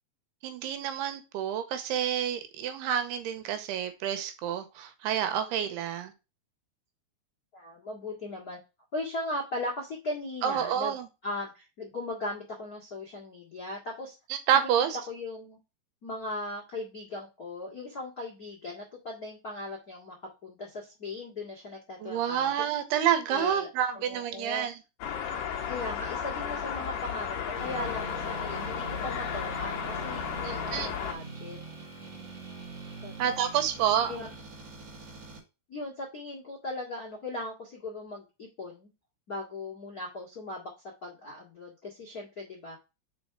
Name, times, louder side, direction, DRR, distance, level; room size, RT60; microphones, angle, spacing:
voice 1, 0.4-6.1 10.4-11.1 14.3-15.0 22.0-24.7 30.4-30.9 33.2-34.1, right 9 dB, 80° right, 2.7 m, -28 dB
voice 2, 7.5-8.6 8.9-10.9 11.2-14.1 14.5-15.6 16.0-20.1 20.4-22.5 23.3-23.7 23.9-24.7 25.7-31.6 33.0-33.4 34.1-34.3 35.7-38.9 39.3-40.7 41.0-42.8, left 2 dB, 70° left, 0.8 m, -38 dB
sound 1, 25.0-31.1, left 8 dB, 90° left, 1.4 m, -34 dB
sound 2, 27.6-35.4, right 4 dB, 50° right, 2.0 m, -43 dB
5.4 x 4.5 x 4.5 m
omnidirectional pair, 4.9 m